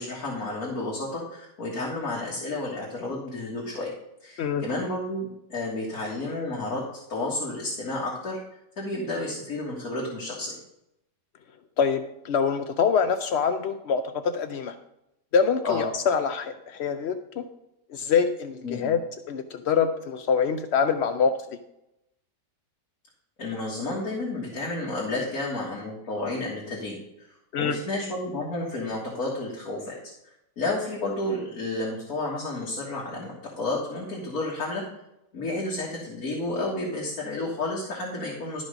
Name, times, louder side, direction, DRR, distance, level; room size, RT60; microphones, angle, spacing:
voice 1, 0.0-3.9 4.2-6.8 7.1-8.4 8.8-10.5 15.6-15.9 18.6-18.9 23.4-27.0 27.6-30.0 30.6-34.8 35.3-38.6, left 2 dB, 55° left, -4 dB, 2.1 m, -31 dB
voice 2, 11.8-14.0 14.3-14.8 15.3-17.4 17.9-19.0 19.3-21.3 27.5-27.8, left 6 dB, 80° left, 8 dB, 0.5 m, -25 dB
12.0 x 5.3 x 5.0 m, 0.85 s
omnidirectional pair, 1.8 m